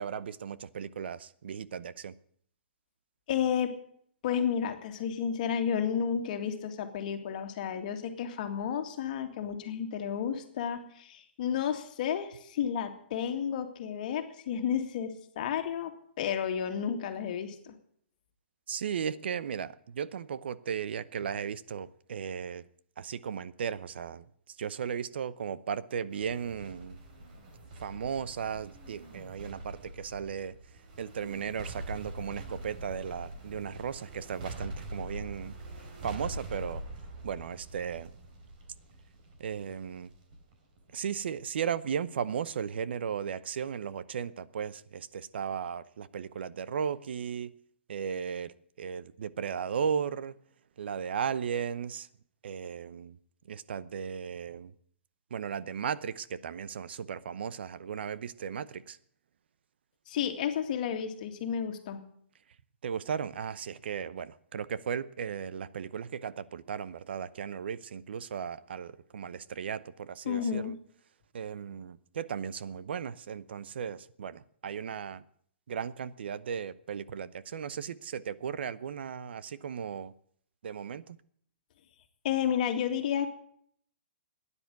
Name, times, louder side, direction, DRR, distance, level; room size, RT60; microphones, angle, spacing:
voice 1, 0.0-2.2 18.7-22.7 23.0-27.0 27.8-30.6 31.0-36.8 37.2-38.1 39.4-40.1 40.9-47.5 47.9-50.4 50.8-52.1 52.4-53.2 53.4-54.7 55.3-59.0 62.8-70.8 71.3-75.2 75.7-80.1 80.6-81.2, right 7 dB, 70° right, 0.7 m, -36 dB
voice 2, 3.3-3.7 4.2-17.7 60.1-62.0 70.3-70.7 82.2-83.3, left 8 dB, 45° left, 2.1 m, -32 dB
sound 1, 26.1-41.6 41.9-42.0, right 1 dB, 45° right, 3.6 m, -44 dB
13.0 x 10.0 x 9.3 m
hypercardioid pair, 160°, 6 cm